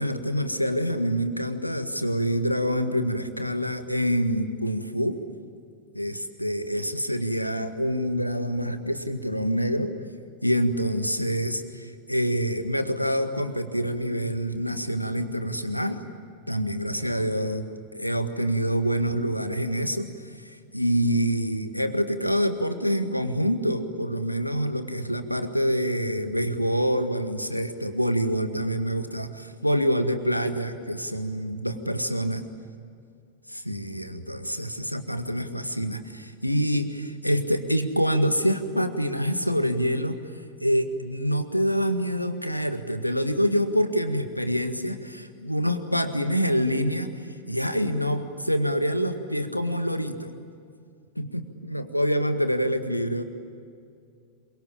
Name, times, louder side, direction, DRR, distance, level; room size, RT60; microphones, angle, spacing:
voice 1, 0.0-5.2 5.9-9.9 10.4-16.0 16.5-17.6 17.9-32.4 33.5-40.2 40.6-50.3 51.2-53.2, equal, 90° left, 8 dB, 1.8 m, -26 dB
27.0 x 24.0 x 8.8 m, 2.3 s
figure-of-eight pair, 90°, 0 cm